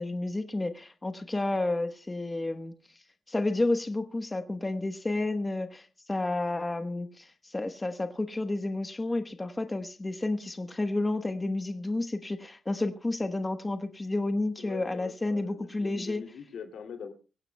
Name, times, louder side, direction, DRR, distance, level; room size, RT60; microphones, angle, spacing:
voice 1, 0.0-2.7 3.3-16.2, left 2 dB, 20° left, 1.2 m, -31 dB
voice 2, 14.6-17.1, left 6 dB, 80° left, 2.5 m, -42 dB
24.0 x 16.5 x 2.3 m
cardioid pair, 105°, 0 cm